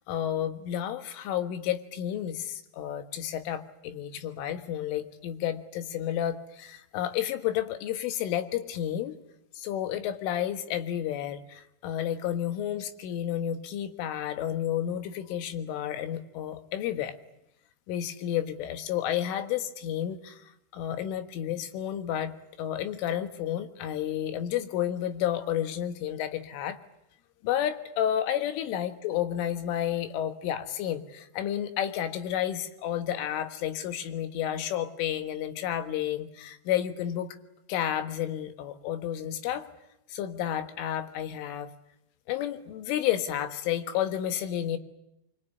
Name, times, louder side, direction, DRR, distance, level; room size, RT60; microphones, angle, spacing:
voice 1, 0.1-9.1 9.6-17.1 17.9-20.4 20.7-26.8 27.4-37.4 37.7-39.7 40.1-41.7 42.3-44.8, left 11 dB, 85° left, 9 dB, 4.0 m, -31 dB
24.5 x 23.5 x 9.6 m, 0.82 s
omnidirectional pair, 5.5 m